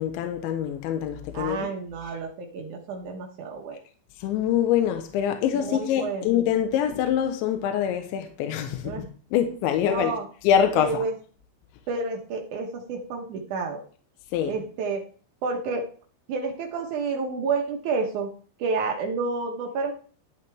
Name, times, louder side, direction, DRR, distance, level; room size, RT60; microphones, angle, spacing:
voice 1, 0.0-1.7 4.2-10.1 10.4-11.1 14.3-14.5, left 9 dB, 85° left, 3.2 m, -25 dB
voice 2, 1.3-3.7 5.6-6.3 8.8-9.1 9.8-10.2 10.8-11.1 11.9-13.8 14.5-15.0 15.4-15.8 16.3-18.3 18.6-19.9, right 4 dB, 90° right, 1.7 m, -29 dB
12.0 x 10.5 x 3.4 m
omnidirectional pair, 5.4 m